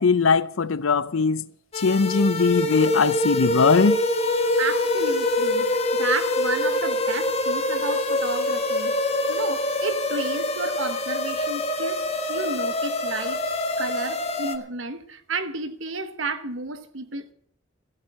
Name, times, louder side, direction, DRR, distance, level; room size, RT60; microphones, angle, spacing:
voice 1, 0.0-1.5 1.8-4.0, left 4 dB, 85° left, 0.6 m, -20 dB
sound 1, 1.7-14.6, left 1 dB, 30° left, 1.1 m, -25 dB
voice 2, 4.6-9.0 9.3-13.4 13.8-17.3, right 3 dB, 75° right, 1.2 m, -32 dB
13.5 x 8.3 x 8.5 m
head